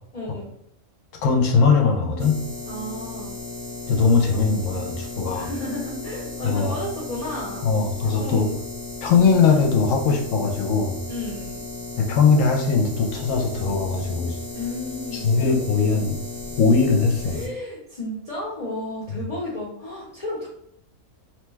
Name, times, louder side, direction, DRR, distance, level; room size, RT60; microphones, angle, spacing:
voice 1, 0.1-0.5 2.7-3.4 4.0-4.4 5.3-7.7 8.2-8.6 11.1-11.6 14.5-15.3 17.2-20.5, left 1 dB, 40° left, -7 dB, 0.6 m, -33 dB
voice 2, 1.2-2.4 3.9-5.5 6.4-6.7 7.6-8.5 9.0-11.0 12.0-14.4 15.1-16.2 16.6-17.4, left 5 dB, 70° left, 2 dB, 0.9 m, -20 dB
sound 1, 2.2-17.5, left 3 dB, 25° right, 0.8 m, -35 dB
2.9 x 2.2 x 3.2 m, 0.71 s
omnidirectional pair, 1.4 m